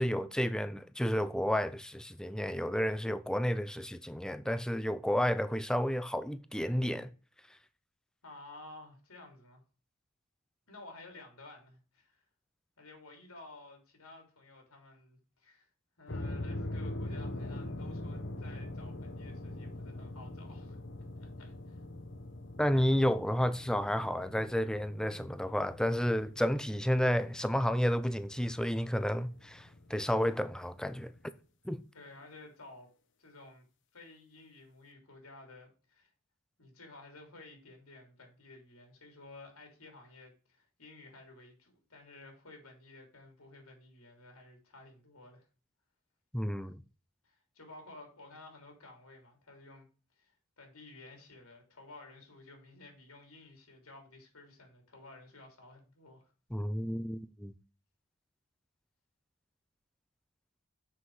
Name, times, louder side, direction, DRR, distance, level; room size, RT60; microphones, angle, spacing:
voice 1, 0.0-7.1 22.6-31.1 31.6-31.8 46.3-46.8 56.5-57.5, equal, 5° left, 0.5 m, -31 dB
voice 2, 8.2-9.6 10.7-12.2 12.8-15.7 16.0-20.8 21.2-21.8 31.9-32.9 33.2-33.6 33.9-36.1 36.6-45.4 47.2-49.9 50.2-56.3, left 2 dB, 80° left, 3.3 m, -53 dB
sound 1, 16.1-31.3, left 1 dB, 55° left, 1.0 m, -43 dB
7.6 x 6.2 x 4.8 m
head